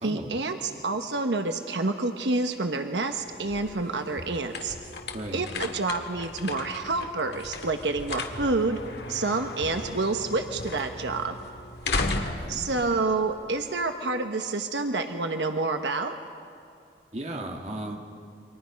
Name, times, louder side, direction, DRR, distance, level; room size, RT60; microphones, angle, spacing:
voice 1, 0.0-4.8 5.3-8.8 9.1-11.3 12.5-16.1, right 3 dB, 85° right, 6 dB, 1.1 m, -28 dB
sound 1, 3.2-13.9, left 3 dB, 70° left, 1.7 m, -36 dB
voice 2, 5.1-5.5 12.0-12.7 17.1-18.0, right 1 dB, 40° right, 1 dB, 2.3 m, -36 dB
29.0 x 24.0 x 5.2 m, 2.6 s
head